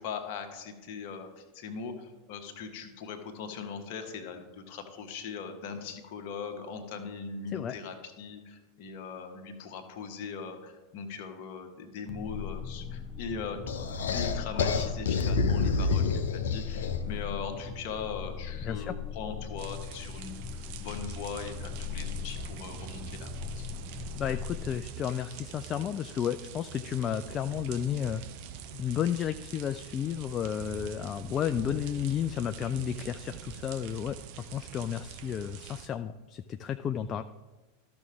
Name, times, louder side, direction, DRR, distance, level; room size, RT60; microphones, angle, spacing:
voice 1, 0.0-13.6 14.0-16.1 16.3-23.7, left 5 dB, 50° left, 5 dB, 1.2 m, -40 dB
sound 1, 12.1-24.8, left 7 dB, 10° left, 0.9 m, -39 dB
sound 2, 13.7-17.2, left 4 dB, 65° left, 0.7 m, -28 dB
voice 2, 18.6-18.9 24.2-28.2 28.7-37.2, left 9 dB, 30° left, 8 dB, 0.3 m, -32 dB
sound 3, 19.6-35.9, right 8 dB, 50° right, 0.7 m, -45 dB
13.5 x 6.1 x 3.5 m, 1.2 s
figure-of-eight pair, 85°, 0 cm